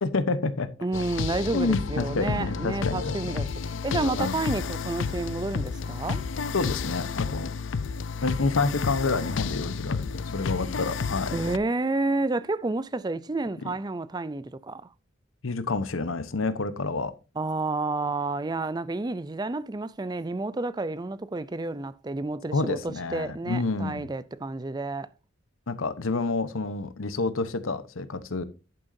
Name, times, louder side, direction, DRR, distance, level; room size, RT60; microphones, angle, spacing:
voice 1, 0.0-0.7 1.5-3.2 4.0-4.4 6.5-7.5 8.2-11.4 15.4-17.1 22.5-24.1 25.7-28.4, left 3 dB, 90° left, 1.0 m, -28 dB
voice 2, 0.8-3.5 3.8-6.2 11.3-14.8 17.4-25.1, right 2 dB, 20° right, 0.4 m, -30 dB
sound 1, 0.9-11.6, left 5 dB, 65° left, 0.5 m, -31 dB
10.5 x 8.9 x 2.7 m
head